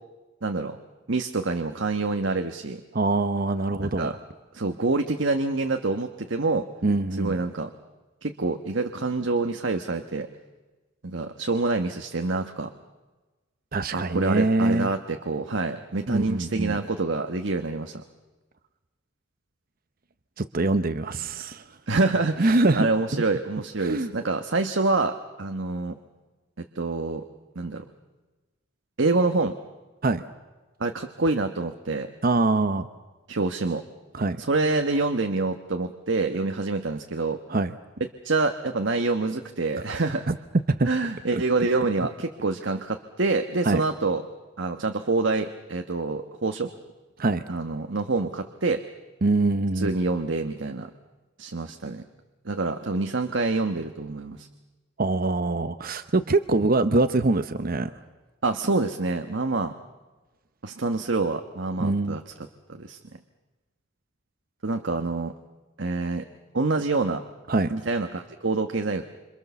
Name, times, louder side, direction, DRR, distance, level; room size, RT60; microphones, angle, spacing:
voice 1, 0.4-0.8 1.1-2.8 4.0-4.1 4.5-6.7 7.2-7.7 8.2-10.3 11.0-12.7 13.9-18.0 21.9-25.9 26.7-27.2 27.5-27.8 29.0-29.6 30.8-32.1 33.3-33.8 34.4-37.4 38.2-40.3 40.8-44.2 44.6-46.7 47.5-48.8 49.7-50.9 51.4-52.0 52.4-54.5 58.4-59.7 60.6-62.2 62.7-63.0 64.6-65.3 65.8-66.2 66.5-67.2 67.7-69.0, right 3 dB, 65° right, 6 dB, 1.2 m, -26 dB
voice 2, 2.9-4.2 6.8-7.4 13.7-14.9 16.1-16.8 20.4-21.6 22.4-23.2 23.8-24.1 30.0-30.2 32.2-32.9 34.1-34.4 37.5-37.8 40.3-40.4 40.7-40.9 41.3-41.4 43.6-43.8 47.2-47.4 49.2-49.9 55.0-57.9 61.8-62.2 67.5-67.7, right 2 dB, 45° right, 10 dB, 0.8 m, -24 dB
27.0 x 26.5 x 7.0 m, 1.2 s
head